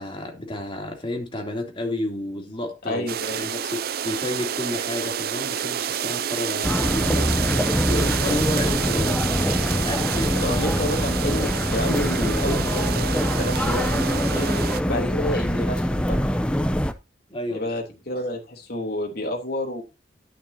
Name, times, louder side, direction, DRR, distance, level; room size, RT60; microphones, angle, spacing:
voice 1, 0.0-3.1 3.3-7.4 7.9-9.2 9.5-10.4 17.3-17.7, left 1 dB, 30° left, 3.1 m, -31 dB
voice 2, 2.8-3.4 7.9-8.0 10.4-14.5 14.9-16.2 17.5-19.8, left 1 dB, 60° left, 3.3 m, -29 dB
sound 1, 3.1-14.8, right 8 dB, 55° right, 0.5 m, -29 dB
sound 2, 6.6-16.9, equal, 5° left, 0.7 m, -24 dB
11.5 x 9.8 x 2.8 m
head